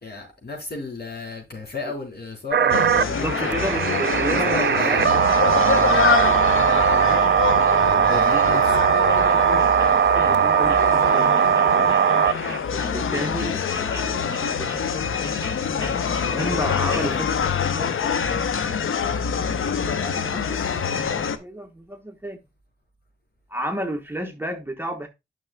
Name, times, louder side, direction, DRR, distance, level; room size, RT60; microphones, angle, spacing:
voice 1, 0.0-4.0 4.3-5.2 8.0-8.8 17.0-17.3, left 3 dB, 50° left, 4.0 m, -33 dB
sound 1, 2.5-12.6, right 8 dB, 60° right, 0.5 m, -19 dB
sound 2, 2.7-21.4, left 6 dB, 75° left, 0.7 m, -25 dB
voice 2, 3.1-5.1 5.5-5.7 10.0-12.0 12.7-15.1 16.2-17.3 17.7-19.3 19.9-22.4 23.5-25.1, right 1 dB, 10° right, 1.1 m, -32 dB
sound 3, 7.1-17.1, equal, 20° left, 2.7 m, -42 dB
9.7 x 6.2 x 2.2 m
cardioid pair, 50°, 21 cm